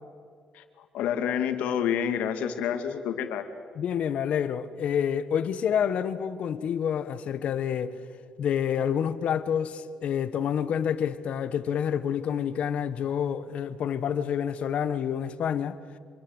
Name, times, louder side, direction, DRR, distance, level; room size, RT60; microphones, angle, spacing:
voice 1, 0.5-3.5, left 8 dB, 85° left, 2.5 m, -29 dB
voice 2, 3.8-8.0 8.4-15.8, left 8 dB, 65° left, 1.5 m, -28 dB
27.0 x 23.5 x 8.3 m
cardioid pair, 90°, 2 cm